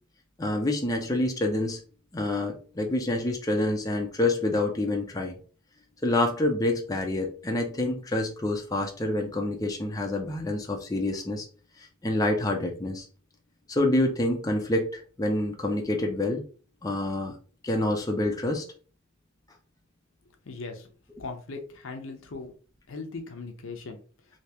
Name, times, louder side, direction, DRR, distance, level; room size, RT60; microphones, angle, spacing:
voice 1, 0.4-1.8 2.1-5.4 6.0-11.5 12.0-13.1 13.7-16.4 16.8-17.3 17.6-18.6, left 1 dB, 15° left, 1 dB, 0.5 m, -27 dB
voice 2, 20.5-20.9 21.2-22.5 22.9-24.0, left 3 dB, 65° left, 5 dB, 0.7 m, -39 dB
3.3 x 2.8 x 2.8 m, 0.39 s
head